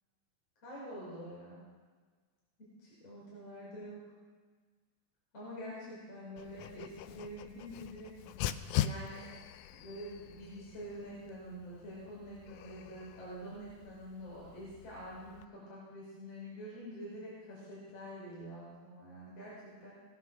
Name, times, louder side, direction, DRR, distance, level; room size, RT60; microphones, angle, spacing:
voice 1, 0.6-1.6 2.6-4.0 5.3-8.1 8.8-9.3 9.7-19.9, equal, 45° left, -7 dB, 5.7 m, -46 dB
Dog, 6.4-15.5, left 11 dB, 90° left, 1.7 m, -42 dB
19.5 x 9.8 x 6.3 m, 1.5 s
omnidirectional pair, 4.1 m